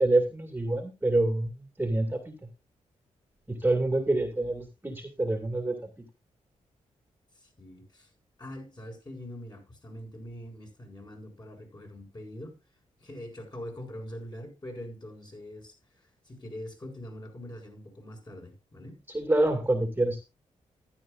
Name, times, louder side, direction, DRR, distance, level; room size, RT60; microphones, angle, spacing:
voice 1, 0.0-2.3 3.5-5.8 19.1-20.2, right 2 dB, 15° right, 2.2 m, -26 dB
voice 2, 7.3-8.1 8.4-12.6 13.0-19.0, left 1 dB, 35° left, 6.7 m, -43 dB
14.0 x 12.0 x 2.5 m
cardioid pair, 70°, 13 cm